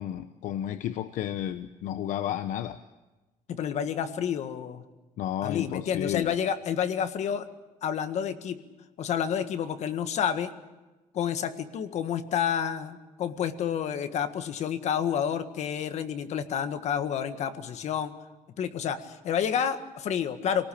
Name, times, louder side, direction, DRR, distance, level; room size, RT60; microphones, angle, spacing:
voice 1, 0.0-2.8 5.2-6.3, left 11 dB, 75° left, 10 dB, 1.0 m, -32 dB
voice 2, 3.5-4.8 5.4-7.5 7.8-8.6 9.0-10.5 11.1-18.1 18.6-20.7, left 8 dB, 60° left, 9 dB, 1.8 m, -29 dB
26.5 x 19.0 x 8.7 m, 1.1 s
cardioid pair, 150°, 13 cm